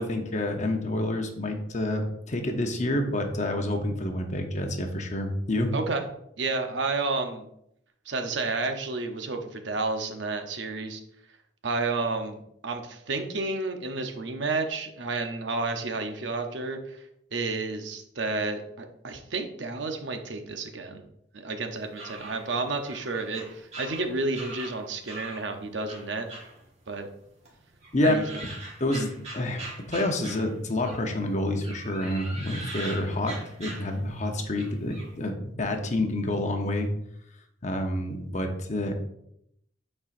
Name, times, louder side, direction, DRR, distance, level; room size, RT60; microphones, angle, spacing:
voice 1, 0.0-5.7 27.9-28.1 28.8-36.9 37.6-38.9, left 1 dB, 40° left, 4 dB, 0.8 m, -28 dB
voice 2, 5.7-6.0 6.4-7.5 8.1-11.0 11.6-17.0 17.3-21.0 21.3-26.3 26.9-27.1 28.0-28.2, right 3 dB, 65° right, 5 dB, 0.8 m, -31 dB
sound 1, 21.7-25.5 25.9-27.2 27.4-31.1 31.6-34.2 34.5-35.1, right 2 dB, 35° right, 1.6 m, -42 dB
8.5 x 4.4 x 2.5 m, 0.76 s
head